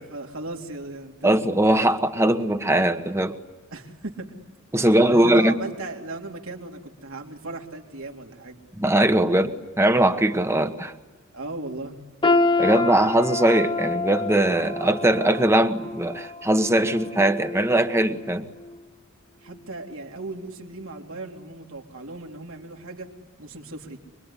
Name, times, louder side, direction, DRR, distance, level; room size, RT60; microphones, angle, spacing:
voice 1, 0.0-1.6 3.7-4.3 5.1-8.6 11.3-12.0 19.4-23.1 23.4-24.0, right 2 dB, 70° right, 1 dB, 3.2 m, -37 dB
voice 2, 1.2-3.4 4.7-5.5 8.8-10.9 12.6-18.4, right 1 dB, 10° right, 8 dB, 1.3 m, -20 dB
sound 1, 12.2-18.2 18.6-18.8 19.5-19.6, left 3 dB, 25° left, 0.9 m, -27 dB
25.5 x 23.0 x 9.9 m, 1.2 s
head